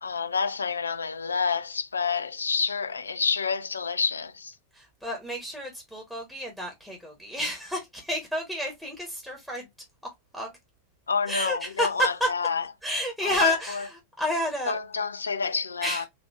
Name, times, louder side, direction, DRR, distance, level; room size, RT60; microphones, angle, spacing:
voice 1, 0.0-4.6 11.1-12.6 13.2-13.8 14.7-16.0, left 5 dB, 75° left, 0.4 m, -28 dB
voice 2, 4.7-9.7 10.3-10.5 11.3-12.3 12.8-14.8 15.8-16.1, equal, ahead, 1.2 m, -30 dB
4.0 x 2.7 x 3.1 m
figure-of-eight pair, 90°, 0 cm